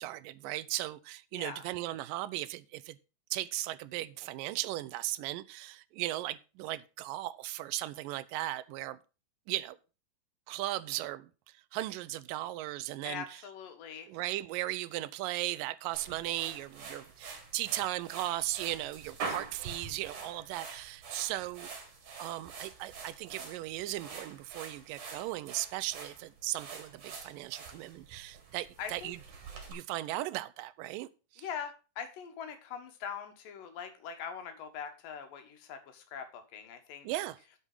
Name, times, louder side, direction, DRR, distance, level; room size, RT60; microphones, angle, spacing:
voice 1, 0.0-3.0 3.3-9.0 9.5-9.8 10.5-11.3 11.7-13.4 14.1-21.7 22.2-29.2 29.7-31.5 37.0-37.4, right 16 dB, 90° right, 2.3 m, -37 dB
voice 2, 13.0-14.1 28.8-29.1 31.4-37.1, left 7 dB, 85° left, 3.1 m, -42 dB
sound 1, 15.9-29.7, right 4 dB, 65° right, 3.6 m, -45 dB
8.2 x 7.2 x 5.4 m
omnidirectional pair, 3.8 m